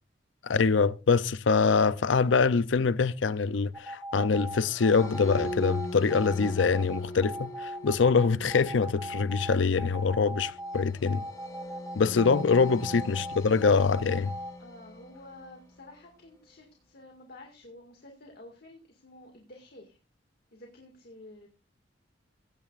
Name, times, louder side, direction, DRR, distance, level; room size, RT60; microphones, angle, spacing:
voice 1, 0.4-11.2 12.0-14.3, left 5 dB, 90° left, 0.6 m, -24 dB
sound 1, 3.7-14.5, right 1 dB, 15° right, 4.6 m, -38 dB
sound 2, 4.5-15.9, equal, 20° left, 3.9 m, -42 dB
voice 2, 12.0-12.3 14.6-20.0 20.5-21.5, left 2 dB, 60° left, 2.1 m, -50 dB
16.0 x 10.5 x 2.5 m
head